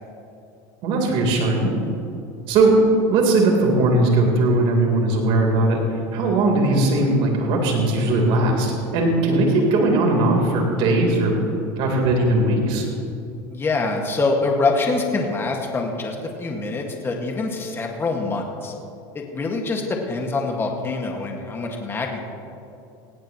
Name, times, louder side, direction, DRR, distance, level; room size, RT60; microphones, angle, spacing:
voice 1, 0.8-1.7 2.5-2.8 3.1-11.4 11.8-12.9, right 2 dB, 60° right, 1 dB, 3.9 m, -19 dB
voice 2, 13.5-18.7 19.1-22.2, left 3 dB, 20° left, 1 dB, 1.9 m, -25 dB
18.0 x 17.0 x 3.1 m, 2.8 s
supercardioid pair, 115°, 10 cm